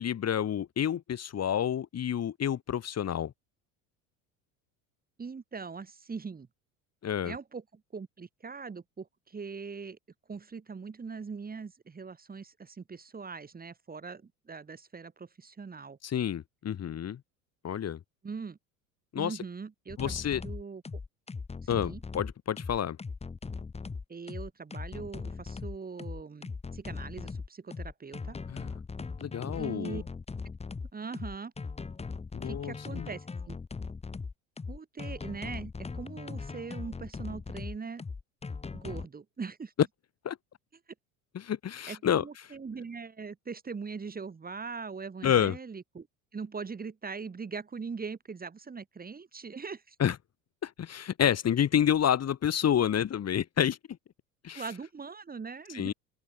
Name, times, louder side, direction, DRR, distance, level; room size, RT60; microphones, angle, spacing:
voice 1, 0.0-3.3 7.0-7.3 16.0-17.2 17.6-18.0 19.1-19.4 20.0-20.4 21.7-23.0 28.5-28.7 29.2-30.0 32.3-33.1 40.2-40.4 41.3-42.2 45.2-45.6 50.0-50.2 50.6-53.8 54.4-54.6 55.7-55.9, left 9 dB, 35° left, 2.6 m, -29 dB
voice 2, 5.2-6.5 7.2-10.0 10.3-16.0 18.2-18.6 19.2-20.8 21.6-22.0 24.1-28.4 29.5-30.0 30.9-31.5 32.4-33.6 34.7-38.0 38.7-39.7 41.9-46.1 46.3-50.0 54.5-55.9, right 5 dB, 20° right, 2.3 m, -41 dB
German Techno loop, 19.9-39.1, left 4 dB, 15° left, 1.3 m, -39 dB
open air
hypercardioid pair, 75°, 41 cm